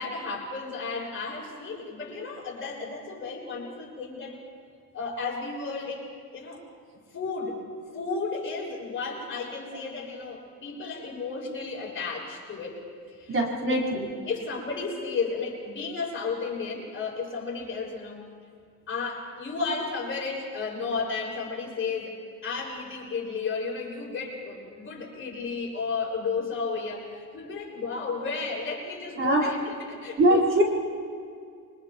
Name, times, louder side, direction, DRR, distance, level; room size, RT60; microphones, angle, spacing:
voice 1, 0.0-4.4 4.9-6.1 6.3-6.6 7.1-7.6 7.9-12.8 13.1-13.3 13.6-13.8 14.3-18.3 18.9-22.2 22.4-29.6 29.9-30.4, left 4 dB, 35° left, -4 dB, 6.8 m, -33 dB
voice 2, 13.3-14.1 29.2-29.5 30.2-30.6, right 1 dB, 35° right, -2 dB, 4.2 m, -22 dB
29.5 x 24.5 x 4.5 m, 2.3 s
cardioid pair, 135°, 36 cm